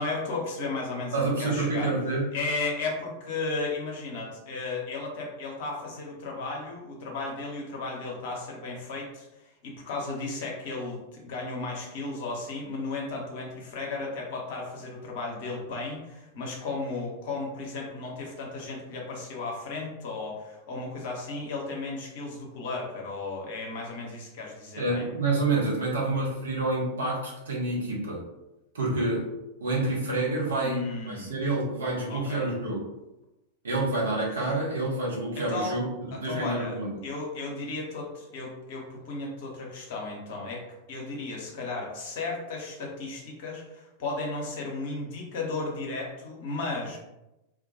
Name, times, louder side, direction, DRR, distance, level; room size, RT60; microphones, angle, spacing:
voice 1, 0.0-1.9 2.3-25.0 30.6-31.4 32.1-32.5 35.4-35.7 36.1-36.8 37.0-40.6 40.9-47.0, left 3 dB, 50° left, -1 dB, 0.7 m, -34 dB
voice 2, 1.1-2.3 24.8-28.2 28.7-29.2 29.6-32.9 33.6-35.9 36.2-37.0, right 2 dB, 65° right, -4 dB, 0.8 m, -28 dB
2.1 x 2.1 x 2.7 m, 0.95 s
figure-of-eight pair, 90°, 0 cm